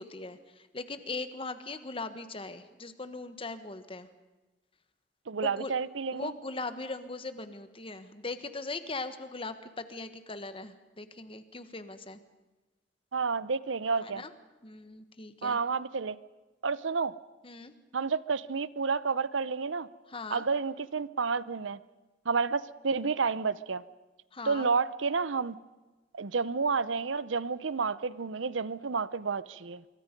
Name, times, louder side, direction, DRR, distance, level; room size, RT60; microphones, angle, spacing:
voice 1, 0.0-4.1 5.4-5.7 6.1-12.2 14.0-14.3 14.6-15.6 17.4-17.7 20.1-20.4 24.3-24.7, left 3 dB, 30° left, 10 dB, 1.3 m, -40 dB
voice 2, 5.3-6.3 13.1-14.2 15.4-16.2 16.6-17.1 17.9-19.9 20.3-21.8 22.3-23.8 24.4-25.6 26.1-29.8, right 5 dB, 80° right, 17 dB, 0.7 m, -30 dB
25.5 x 23.5 x 5.3 m, 1.2 s
head